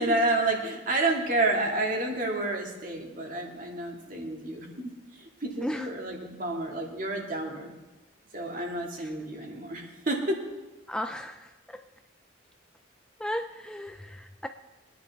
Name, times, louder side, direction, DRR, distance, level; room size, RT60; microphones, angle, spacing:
voice 1, 0.0-7.7 8.3-10.4, right 2 dB, 45° right, 1 dB, 2.2 m, -30 dB
voice 2, 10.9-11.8 13.2-14.5, equal, 5° left, 6 dB, 0.3 m, -35 dB
23.0 x 10.5 x 3.5 m, 1.1 s
head